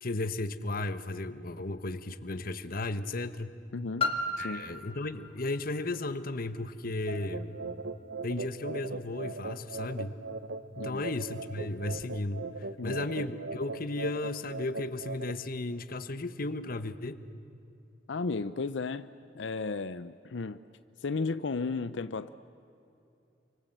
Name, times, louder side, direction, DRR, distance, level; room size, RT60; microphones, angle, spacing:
voice 1, 0.0-3.5 4.4-7.5 8.2-10.1 10.8-12.4 12.8-17.2, left 2 dB, 55° left, 11 dB, 1.2 m, -34 dB
voice 2, 3.7-4.1 4.4-4.7 10.8-11.1 12.8-13.3 18.1-19.1 19.3-20.6 21.0-22.3, left 4 dB, 90° left, 13 dB, 0.6 m, -34 dB
Piano, 4.0-9.4 10.2-10.3, left 3 dB, 30° left, 1.9 m, -38 dB
sound 1, 7.1-15.3, right 3 dB, 80° right, 1.0 m, -40 dB
29.0 x 25.0 x 7.9 m, 2.8 s
head